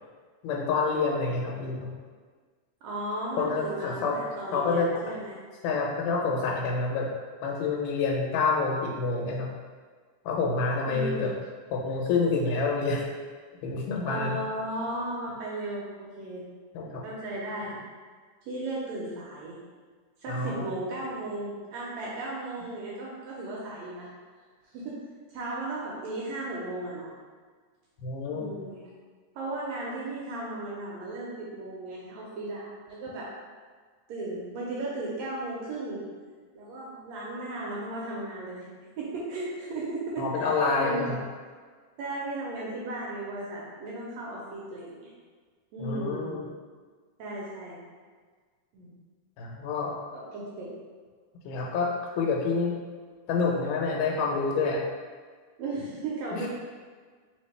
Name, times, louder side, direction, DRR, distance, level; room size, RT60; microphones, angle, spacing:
voice 1, 0.4-1.9 3.4-4.2 4.5-4.9 5.6-7.1 7.4-9.5 10.3-11.3 11.7-13.0 13.6-14.4 16.7-17.0 20.3-20.7 28.0-28.5 40.2-41.2 45.8-46.4 49.4-49.9 51.4-51.9 52.2-52.8 53.3-54.8 56.3-56.5, left 4 dB, 90° left, -1 dB, 2.3 m, -27 dB
voice 2, 2.8-5.4 10.9-11.3 14.0-16.4 17.0-17.8 18.4-19.6 20.2-24.1 24.7-25.0 25.3-27.1 28.3-28.8 29.4-33.3 34.1-36.0 36.6-38.7 39.0-40.5 40.8-41.1 42.0-45.1 45.7-46.4 47.2-47.8 48.7-49.0 50.1-50.7 55.6-56.5, right 2 dB, 75° right, -5 dB, 1.7 m, -35 dB
4.3 x 3.5 x 3.2 m, 1.6 s
omnidirectional pair, 3.6 m